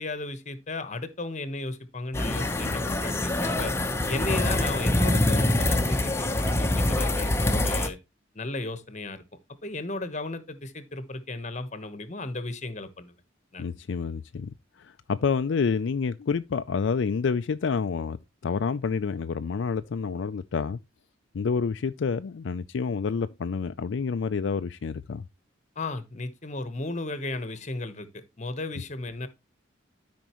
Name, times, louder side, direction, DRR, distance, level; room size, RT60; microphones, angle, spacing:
voice 1, 0.0-3.7 4.1-8.0 8.3-9.2 9.6-13.1 13.5-13.6 25.8-29.3, left 2 dB, 35° left, 1.1 m, -34 dB
sound 1, 2.1-7.9, left 1 dB, 15° left, 0.9 m, -25 dB
voice 2, 13.6-18.2 18.4-20.8 21.3-25.2, left 5 dB, 70° left, 0.4 m, -28 dB
12.5 x 5.2 x 3.0 m
head